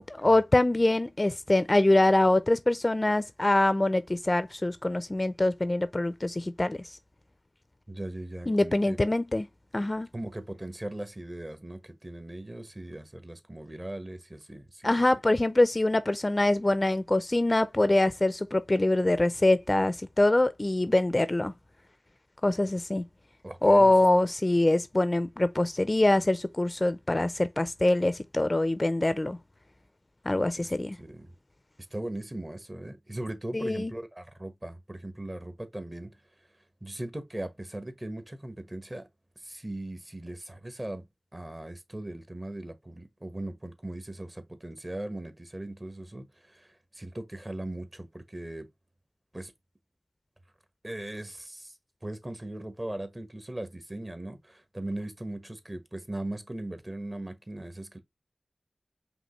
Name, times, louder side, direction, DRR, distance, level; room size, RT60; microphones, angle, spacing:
voice 1, 0.2-6.8 8.5-9.5 9.7-10.1 14.8-21.5 22.4-23.0 23.6-29.4 30.3-31.0 33.5-33.9, left 2 dB, 35° left, 0.5 m, -24 dB
voice 2, 7.9-9.0 10.1-14.9 23.4-23.9 30.6-31.3 31.9-36.1 36.8-39.1 39.4-41.0 41.3-48.7 49.3-49.5 50.8-51.7 52.0-58.0, right 1 dB, 30° right, 1.2 m, -39 dB
5.2 x 3.0 x 3.1 m
cardioid pair, 40°, 0 cm